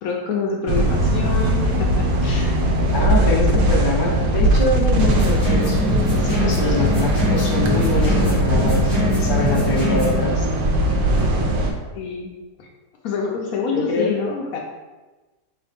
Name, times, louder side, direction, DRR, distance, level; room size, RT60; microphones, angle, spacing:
voice 1, 0.0-2.6 11.9-12.7 13.0-14.6, left 5 dB, 70° left, 0 dB, 0.9 m, -27 dB
sound 1, 0.7-11.7, right 1 dB, 85° right, 1.2 m, -19 dB
voice 2, 2.9-10.5 13.7-14.2, left 2 dB, 40° left, -4 dB, 0.3 m, -25 dB
sound 2, 5.0-10.2, left 2 dB, ahead, 0.8 m, -23 dB
3.9 x 3.1 x 3.3 m, 1.2 s
omnidirectional pair, 1.8 m